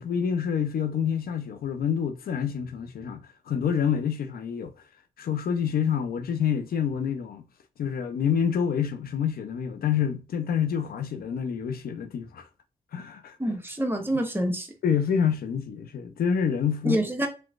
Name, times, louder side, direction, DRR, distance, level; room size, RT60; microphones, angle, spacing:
voice 1, 0.0-4.7 5.2-7.5 7.8-12.5 12.9-13.4 14.8-17.0, left 7 dB, 80° left, 0.6 m, -27 dB
voice 2, 13.4-14.7 16.8-17.3, right 1 dB, 15° right, 1.1 m, -26 dB
3.1 x 3.1 x 2.4 m
cardioid pair, 45°, 15 cm